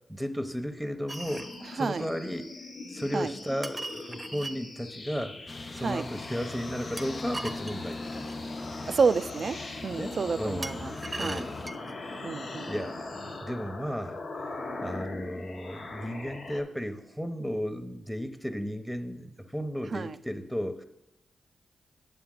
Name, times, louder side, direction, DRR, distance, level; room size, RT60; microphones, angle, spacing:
voice 1, 0.1-1.5 1.8-2.5 2.9-5.3 5.7-8.3 10.0-10.8 11.2-11.6 12.0-12.3 12.7-14.2 14.8-20.8, equal, ahead, 0.9 m, -34 dB
sound 1, 1.1-16.6, left 2 dB, 75° left, 1.1 m, -41 dB
sound 2, 1.1-1.6 3.6-4.6 7.0-8.4 10.6-12.0, right 2 dB, 25° right, 0.7 m, -39 dB
voice 2, 1.8-2.1 3.1-3.3 5.8-6.0 8.9-9.6 9.8-11.4 12.2-12.7 19.9-20.2, right 5 dB, 60° right, 0.3 m, -29 dB
sound 3, 5.5-11.7, left 3 dB, 45° left, 0.5 m, -41 dB
8.5 x 6.9 x 3.8 m
supercardioid pair, 45°, 0 cm